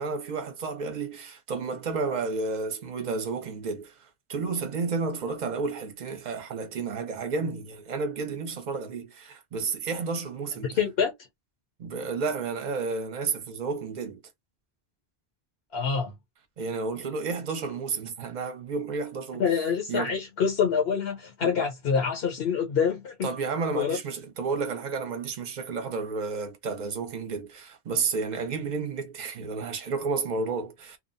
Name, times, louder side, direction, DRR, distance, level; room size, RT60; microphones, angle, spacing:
voice 1, 0.0-10.8 11.8-14.2 16.6-19.4 19.9-20.2 21.4-21.5 23.2-31.0, right 4 dB, 50° right, 0.8 m, -31 dB
voice 2, 10.6-11.1 15.7-16.1 19.4-23.1 23.7-24.0, left 6 dB, 75° left, 1.0 m, -26 dB
2.7 x 2.0 x 2.6 m
omnidirectional pair, 1.0 m